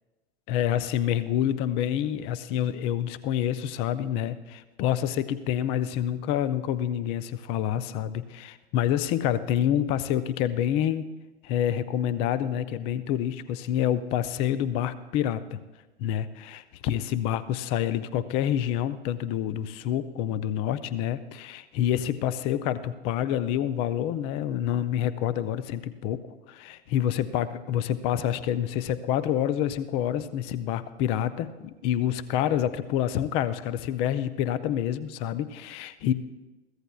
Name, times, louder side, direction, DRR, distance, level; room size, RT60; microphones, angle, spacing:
voice 1, 0.5-11.1 11.4-15.6 16.0-36.1, left 10 dB, 20° left, 16 dB, 0.3 m, -27 dB
22.0 x 15.5 x 2.3 m, 1.1 s
figure-of-eight pair, 100°, 35 cm